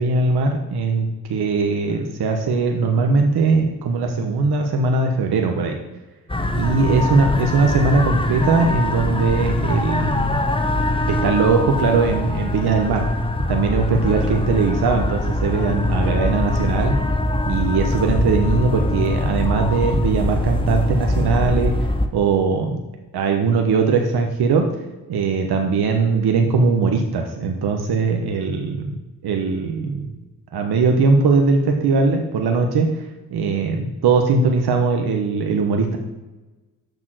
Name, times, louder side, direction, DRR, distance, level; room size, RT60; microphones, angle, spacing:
voice 1, 0.0-5.8 6.5-10.4 11.1-13.0 13.5-17.0 17.5-22.8 23.1-24.6 25.1-29.0 29.2-30.1 30.5-33.0 33.3-36.0, right 4 dB, 60° right, 3 dB, 1.2 m, -20 dB
sound 1, 6.3-22.1, left 1 dB, 10° left, 1.0 m, -22 dB
7.0 x 6.1 x 6.1 m, 1.1 s
hypercardioid pair, 45°, 43 cm